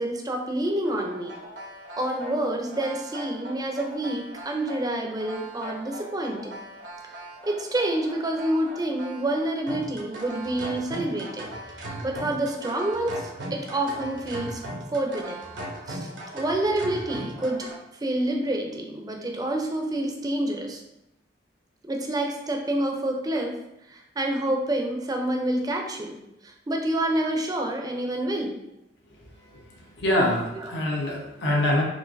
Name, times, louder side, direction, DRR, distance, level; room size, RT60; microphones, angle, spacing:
voice 1, 0.0-1.3 2.0-6.6 7.4-11.5 12.0-14.6 14.9-15.4 15.9-16.1 16.3-17.7 18.0-20.8 21.9-23.6 23.9-26.2 26.4-28.5 30.5-30.9, right 1 dB, 20° right, 2 dB, 0.6 m, -28 dB
sound 1, 0.8-17.7, right 1 dB, 85° right, 1.0 m, -39 dB
voice 2, 30.0-31.8, left 1 dB, 75° left, -2 dB, 1.0 m, -24 dB
6.2 x 2.6 x 2.6 m, 0.87 s
head